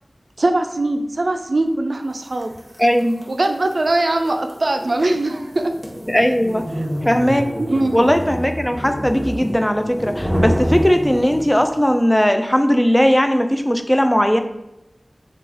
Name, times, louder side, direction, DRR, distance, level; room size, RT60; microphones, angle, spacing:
voice 1, 0.4-2.5 3.3-5.7 7.6-8.0, right 2 dB, 70° right, 5 dB, 0.3 m, -21 dB
sound 1, 2.4-11.8, equal, 10° right, 0.9 m, -27 dB
voice 2, 2.8-3.3 6.1-6.6 7.0-7.4 7.9-14.4, equal, 10° left, 6 dB, 0.3 m, -18 dB
3.1 x 2.3 x 3.7 m, 0.91 s
wide cardioid pair, 40°, 0 cm